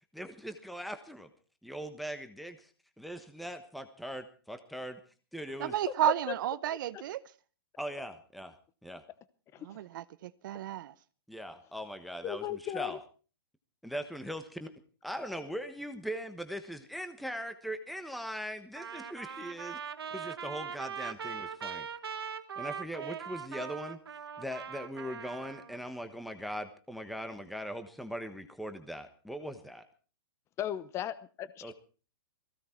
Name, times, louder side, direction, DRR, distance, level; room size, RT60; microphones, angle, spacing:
voice 1, 0.1-1.3 1.6-2.7 3.0-5.0 5.3-5.7 7.8-8.5 8.8-9.0 11.3-13.0 13.8-14.7 15.0-19.8 20.1-21.9 22.6-24.0 24.4-29.8 31.6-31.7, equal, ahead, 1.2 m, -40 dB
voice 2, 5.6-7.2 9.6-10.9, right 12 dB, 55° right, 0.8 m, -32 dB
voice 3, 12.2-13.0 30.6-31.7, left 11 dB, 20° left, 0.8 m, -37 dB
Trumpet, 18.8-25.8, right 7 dB, 85° right, 1.5 m, -41 dB
18.0 x 16.0 x 4.5 m
hypercardioid pair, 140°, 12 cm